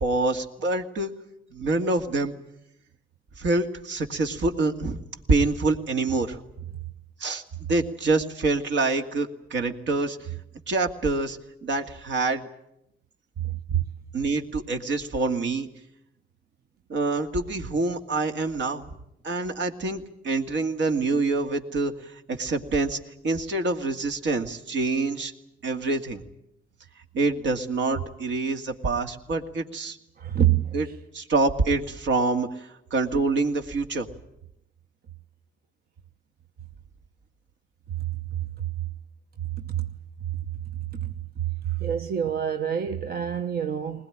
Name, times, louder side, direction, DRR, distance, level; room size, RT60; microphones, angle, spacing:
voice 1, 0.0-1.1 1.5-2.3 3.4-5.0 5.3-6.4 7.2-7.4 7.7-10.2 10.7-12.5 14.1-15.7 16.9-19.0 19.2-23.0 23.2-25.3 25.6-26.2 27.1-30.0 30.7-30.9 31.1-34.1, right 3 dB, 65° right, 2.3 m, -26 dB
voice 2, 13.4-13.8 30.2-30.9 39.7-39.9 40.9-41.1 41.6-44.1, right 10 dB, 50° right, 1.0 m, -26 dB
21.0 x 20.0 x 10.0 m
cardioid pair, 90°, 20 cm